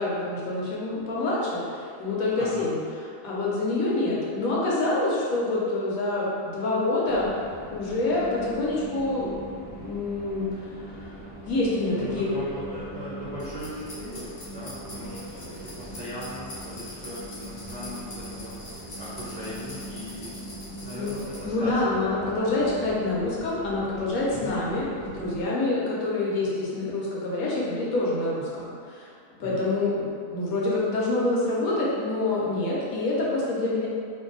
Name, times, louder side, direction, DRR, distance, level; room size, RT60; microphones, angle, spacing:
voice 1, 0.0-7.3 7.7-9.3 9.8-11.1 11.5-12.3 21.0-21.1 21.4-29.1 29.4-33.9, left 2 dB, 80° left, -5 dB, 1.2 m, -27 dB
voice 2, 2.4-2.7 11.9-21.9 24.3-24.6 29.4-29.6, equal, 50° right, -11 dB, 0.5 m, -39 dB
sound 1, 7.1-25.4, right 1 dB, 15° left, 0.4 m, -41 dB
sound 2, 13.4-21.4, left 1 dB, 45° left, 0.8 m, -44 dB
2.6 x 2.6 x 3.8 m, 2.2 s
omnidirectional pair, 1.5 m